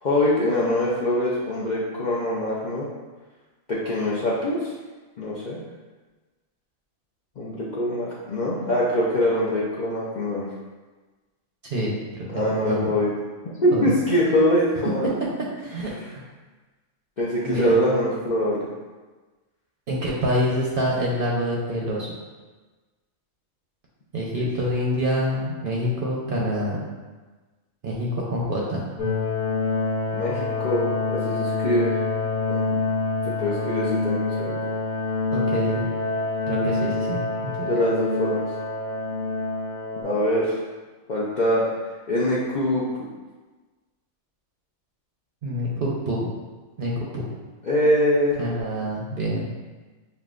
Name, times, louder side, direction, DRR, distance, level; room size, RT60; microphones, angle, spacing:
voice 1, 0.0-2.9 3.7-4.7 5.2-5.6 7.4-10.5 12.3-13.1 13.6-15.2 17.2-18.7 24.3-24.4 30.1-31.9 32.5-32.8 33.2-34.6 37.7-38.4 40.0-40.6 41.1-41.7 42.1-42.8 47.6-48.4, left 1 dB, 55° left, -7 dB, 0.5 m, -23 dB
voice 2, 11.7-12.9 13.7-13.9 15.6-16.2 17.4-17.7 19.9-22.1 24.1-26.8 27.8-28.8 35.3-35.9 36.5-37.7 45.4-46.3 46.8-47.2 48.4-49.5, equal, 50° right, -4 dB, 0.7 m, -26 dB
sound 1, 29.0-40.0, left 3 dB, 90° left, 1.4 m, -26 dB
6.8 x 2.3 x 2.4 m, 1.3 s
omnidirectional pair, 1.4 m